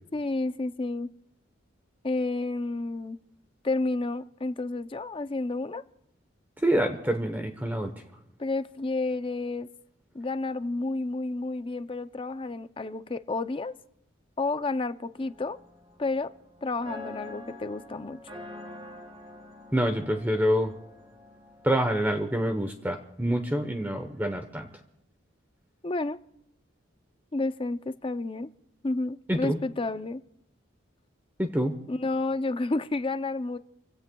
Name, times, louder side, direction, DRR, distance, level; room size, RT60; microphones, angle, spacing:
voice 1, 0.1-1.1 2.0-3.2 3.6-5.8 8.4-9.7 10.1-13.7 14.4-15.6 16.0-16.3 16.6-18.2 25.8-26.2 27.3-28.5 28.8-30.2 31.9-33.6, left 2 dB, 25° left, 11 dB, 0.5 m, -30 dB
voice 2, 6.6-7.9 19.7-20.7 21.6-24.7 29.3-29.6 31.4-31.8, equal, 10° right, 5 dB, 0.9 m, -26 dB
sound 1, 15.1-22.2, left 1 dB, 25° right, 6.4 m, -46 dB
30.0 x 16.5 x 2.3 m, 0.81 s
head